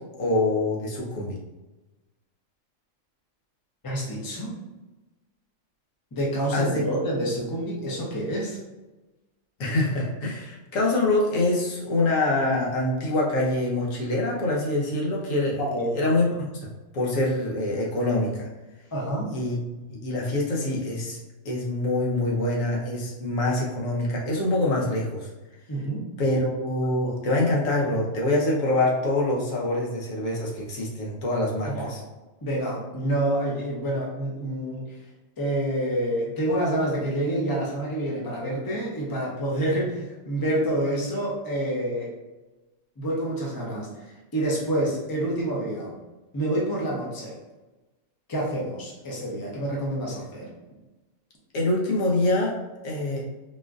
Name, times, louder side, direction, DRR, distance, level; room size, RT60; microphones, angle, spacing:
voice 1, 0.2-1.4 6.5-6.8 9.6-15.6 15.9-18.5 19.3-19.6 19.9-21.2 21.4-25.3 26.2-32.0 51.5-52.5 52.8-53.2, left 2 dB, 85° left, -3 dB, 1.2 m, -25 dB
voice 2, 3.8-4.5 6.1-8.6 15.6-15.9 18.9-19.3 25.7-26.0 31.7-31.9 32.4-34.8 35.4-42.1 43.0-45.9 46.3-47.4 48.3-50.5, right 1 dB, 20° left, -4 dB, 0.6 m, -28 dB
4.1 x 2.5 x 2.4 m, 1.1 s
omnidirectional pair, 1.3 m